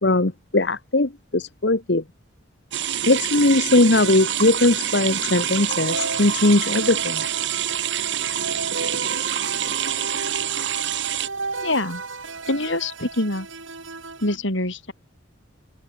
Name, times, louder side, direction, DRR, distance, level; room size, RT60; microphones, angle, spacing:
voice 1, 0.0-2.0 3.1-7.3, left 2 dB, 55° left, 1.2 m, -19 dB
sound 1, 2.7-11.3, right 10 dB, 65° right, 1.4 m, -26 dB
sound 2, 3.1-14.4, right 3 dB, 80° right, 8.0 m, -34 dB
voice 2, 11.6-12.0 12.5-13.5 14.2-14.9, left 2 dB, 75° left, 6.5 m, -25 dB
head